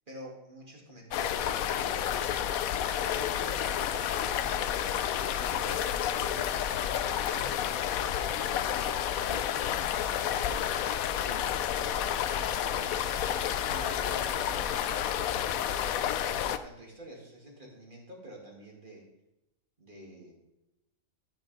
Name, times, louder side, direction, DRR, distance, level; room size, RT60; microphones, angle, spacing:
voice 1, 0.1-1.9 2.9-7.8 8.2-8.4 10.2-10.7 13.7-15.7 16.0-19.0 19.8-20.3, right 1 dB, 35° right, -1 dB, 2.5 m, -48 dB
sound 1, 1.1-16.6, left 9 dB, 90° left, 1.1 m, -30 dB
voice 2, 7.4-7.8 9.3-9.9 11.1-11.7, left 2 dB, 35° left, 1 dB, 1.4 m, -50 dB
13.0 x 9.1 x 3.4 m, 0.91 s
omnidirectional pair, 1.4 m